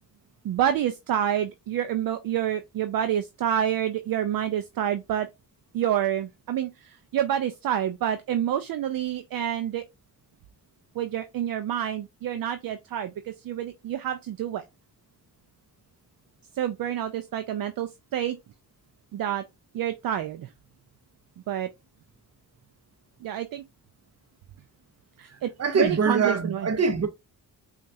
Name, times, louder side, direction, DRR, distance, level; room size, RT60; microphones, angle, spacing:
voice 1, 0.4-5.3 5.7-9.8 11.0-14.6 16.6-18.4 19.1-19.4 19.7-20.5 21.5-21.7 23.2-23.6 25.2-26.7, right 10 dB, 60° right, 0.5 m, -28 dB
voice 2, 25.6-27.1, right 5 dB, 40° right, 0.9 m, -23 dB
5.2 x 2.5 x 2.6 m
cardioid pair, 75°, 40 cm